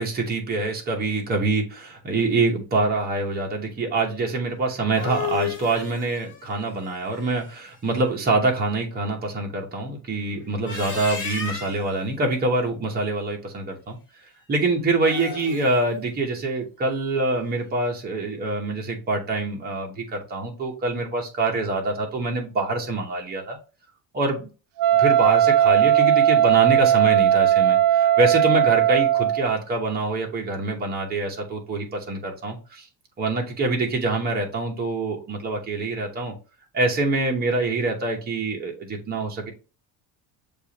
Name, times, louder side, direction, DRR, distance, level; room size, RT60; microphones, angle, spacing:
voice 1, 0.0-14.0 14.5-23.6 24.1-24.5 25.0-32.9 33.2-36.3 36.7-39.5, right 2 dB, 20° right, 1 dB, 0.9 m, -25 dB
sound 1, 4.7-7.7 10.5-12.0 14.9-15.8, left 7 dB, 30° left, 1.0 m, -34 dB
Wind instrument woodwind instrument, 24.8-29.5, right 11 dB, 75° right, 0.5 m, -18 dB
6.7 x 2.5 x 2.8 m, 0.33 s
cardioid pair, 175°, 42 cm